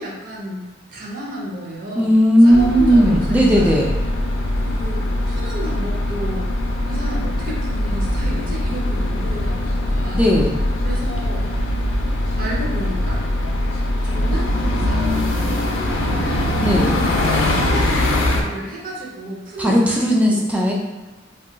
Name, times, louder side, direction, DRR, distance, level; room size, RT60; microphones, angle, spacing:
voice 1, 0.0-2.1 2.4-3.8 4.6-6.5 6.8-10.3 10.8-11.5 12.4-13.2 14.0-14.5 14.8-16.6 16.9-20.5, right 1 dB, 45° right, -3 dB, 0.6 m, -32 dB
voice 2, 2.0-3.9 10.2-10.6 16.6-16.9 19.6-20.7, equal, 5° right, -2 dB, 0.3 m, -15 dB
Traffic os Euston Station at traffic lights Normalised, 2.5-18.4, left 1 dB, 75° left, 0.4 m, -21 dB
2.2 x 2.2 x 3.7 m, 1.2 s
head